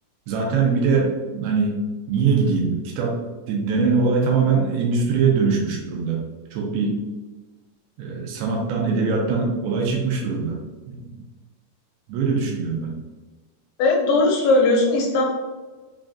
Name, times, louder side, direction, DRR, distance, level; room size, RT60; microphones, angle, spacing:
voice 1, 0.3-1.8 2.1-3.2 3.5-6.2 6.5-7.0 8.0-10.6 10.9-11.1 12.1-12.9, right 5 dB, 80° right, -1 dB, 2.4 m, -22 dB
voice 2, 13.8-15.3, left 2 dB, 80° left, -2 dB, 2.4 m, -18 dB
6.0 x 2.4 x 2.4 m, 1.3 s
omnidirectional pair, 4.6 m